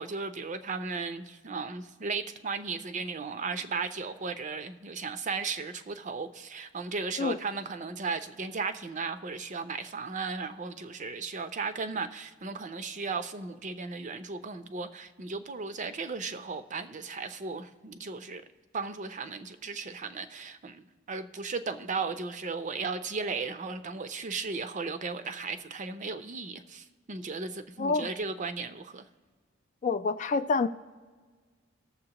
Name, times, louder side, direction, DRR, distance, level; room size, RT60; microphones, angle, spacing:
voice 1, 0.0-18.4 18.7-29.1, right 4 dB, 40° right, 10 dB, 0.5 m, -36 dB
voice 2, 27.8-28.1 29.8-30.7, left 4 dB, 35° left, 11 dB, 0.3 m, -27 dB
19.0 x 7.1 x 2.9 m, 1.5 s
head